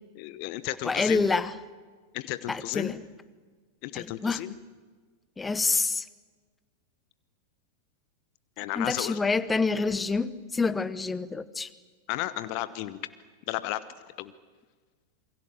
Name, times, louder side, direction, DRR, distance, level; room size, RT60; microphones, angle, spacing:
voice 1, 0.1-1.2 2.1-2.9 3.8-4.5 8.6-9.2 12.1-13.0 13.5-13.8 14.2-14.3, left 16 dB, 45° left, 14 dB, 1.1 m, -33 dB
voice 2, 0.8-1.5 2.5-3.0 3.9-4.4 5.4-6.0 8.8-11.7, left 4 dB, 10° left, 17 dB, 1.1 m, -27 dB
28.0 x 23.0 x 7.7 m, 1.5 s
figure-of-eight pair, 90°, 0 cm